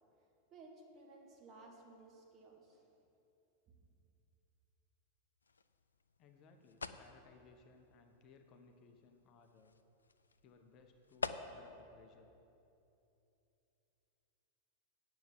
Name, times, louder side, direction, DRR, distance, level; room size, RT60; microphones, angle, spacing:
voice 1, 0.5-2.9, right 2 dB, 30° right, 1 dB, 1.8 m, -57 dB
sound 1, 5.4-11.8, left 4 dB, 75° left, 0.4 m, -48 dB
voice 2, 6.2-9.8 10.4-12.3, left 4 dB, 35° left, 5 dB, 0.8 m, -63 dB
9.2 x 6.9 x 7.7 m, 2.8 s
figure-of-eight pair, 90°, 0 cm